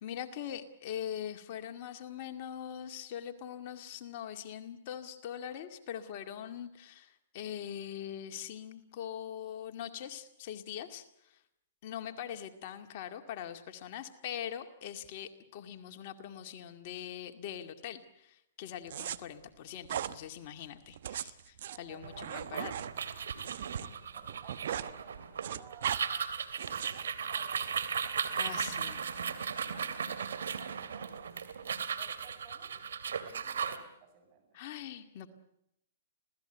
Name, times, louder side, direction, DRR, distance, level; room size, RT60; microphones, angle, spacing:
voice 1, 0.0-11.4 11.8-22.7 28.3-29.0 34.5-35.3, left 10 dB, 45° left, 6 dB, 2.1 m, -42 dB
sound 1, 18.9-19.2 19.8-20.1 20.9-23.9 24.2-24.9 25.2-26.0 26.6-27.0, right 10 dB, 65° right, 1.1 m, -38 dB
voice 2, 21.7-22.2 24.1-26.3 27.2-27.7 28.3-28.7 29.7-29.9 30.2-31.4 31.9-32.7 33.3-34.6, right 6 dB, 40° right, 6 dB, 7.8 m, -56 dB
sound 2, 22.0-33.8, right 7 dB, 80° right, 2.5 m, -36 dB
26.5 x 17.5 x 8.1 m, 0.78 s
hypercardioid pair, 135°, 0 cm